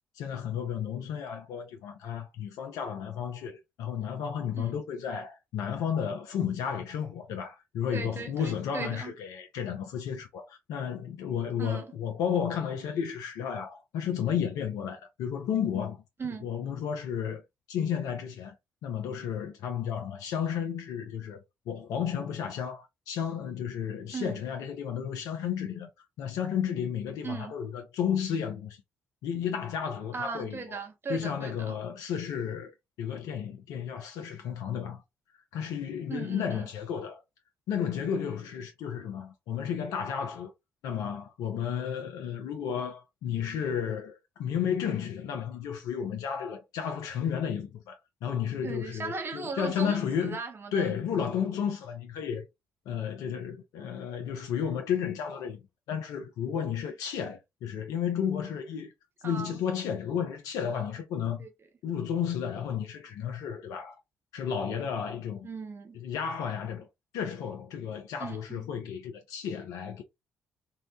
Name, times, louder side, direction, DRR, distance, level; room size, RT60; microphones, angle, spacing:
voice 1, 0.1-16.0 16.4-17.4 17.7-18.5 18.8-25.9 26.2-28.8 29.2-30.8 31.1-35.0 35.5-37.2 37.7-40.5 40.8-50.4 50.7-52.5 52.9-55.6 55.9-58.9 59.2-61.5 61.8-64.0 64.3-65.5 65.9-66.9 67.1-70.0, left 8 dB, 70° left, 0.4 m, -32 dB
voice 2, 7.9-9.1 11.6-11.9 16.2-16.5 24.1-24.4 27.2-27.5 30.1-31.8 36.1-36.7 48.6-50.9 59.2-59.6 61.4-61.5 65.4-66.0 68.2-68.7, right 5 dB, 35° right, 1.0 m, -38 dB
2.7 x 2.1 x 2.7 m
hypercardioid pair, 40°, 6 cm